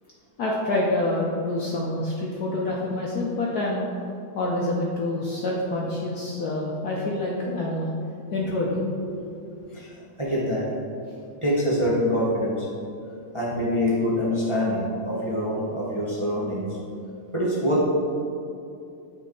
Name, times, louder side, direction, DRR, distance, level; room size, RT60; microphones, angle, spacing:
voice 1, 0.4-3.9 4.3-7.9 8.3-9.1, left 2 dB, 60° left, -3 dB, 1.0 m, -27 dB
voice 2, 9.7-10.7 11.4-12.7 13.3-16.8 17.3-17.9, equal, 20° right, -6 dB, 0.8 m, -25 dB
9.4 x 4.5 x 3.9 m, 2.6 s
omnidirectional pair, 2.3 m